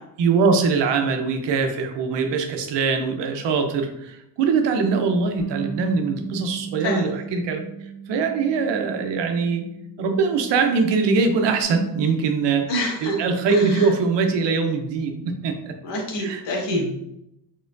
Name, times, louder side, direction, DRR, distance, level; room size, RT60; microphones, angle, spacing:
voice 1, 0.2-7.6 8.1-9.6 10.0-12.7 13.0-15.7 16.2-16.4 16.7-16.9, right 4 dB, 75° right, 5 dB, 0.8 m, -22 dB
Bass guitar, 5.4-11.6, right 6 dB, 30° right, 0.6 m, -37 dB
voice 2, 12.7-13.2 13.5-13.9 15.8-16.9, left 1 dB, 85° left, -1 dB, 1.4 m, -27 dB
4.2 x 3.8 x 2.6 m, 0.80 s
cardioid pair, 130°, 42 cm